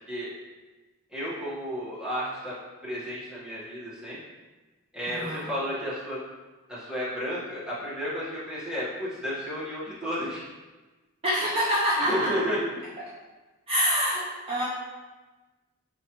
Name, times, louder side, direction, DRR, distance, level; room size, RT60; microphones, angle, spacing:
voice 1, 1.1-2.5 2.8-4.2 4.9-6.2 6.7-10.4 12.0-12.7, equal, 5° right, -10 dB, 1.3 m, -32 dB
voice 2, 5.1-5.4 11.2-12.3 13.7-14.6, equal, 30° right, -8 dB, 0.7 m, -26 dB
4.8 x 3.1 x 2.9 m, 1.2 s
head